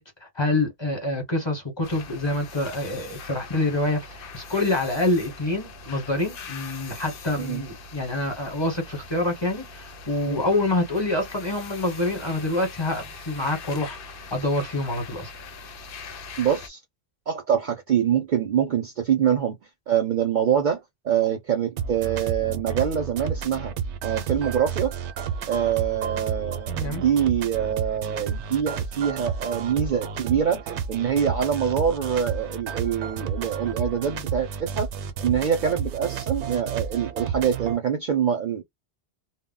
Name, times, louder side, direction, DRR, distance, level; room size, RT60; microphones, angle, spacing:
voice 1, 0.0-14.0 14.3-15.3 26.7-27.0, left 2 dB, 25° left, 0.9 m, -26 dB
sound 1, 1.8-16.7, left 4 dB, 60° left, 0.7 m, -42 dB
voice 2, 16.4-16.8 17.3-19.6 19.9-20.8 21.0-23.7 24.0-25.0 25.5-34.9 35.2-38.6, right 8 dB, 55° right, 0.6 m, -25 dB
sound 2, 21.8-37.8, right 7 dB, 85° right, 0.9 m, -31 dB
2.1 x 2.0 x 3.6 m
omnidirectional pair, 1.1 m